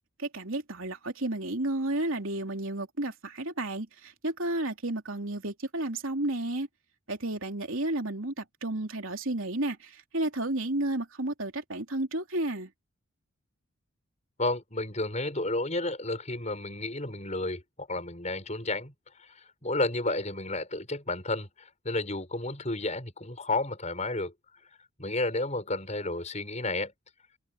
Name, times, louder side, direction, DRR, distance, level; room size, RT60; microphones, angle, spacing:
voice 1, 0.2-6.7 7.1-12.7, right 1 dB, 70° right, 3.3 m, -32 dB
voice 2, 14.4-18.9 19.2-24.3 25.0-26.9, left 2 dB, 30° left, 6.5 m, -32 dB
head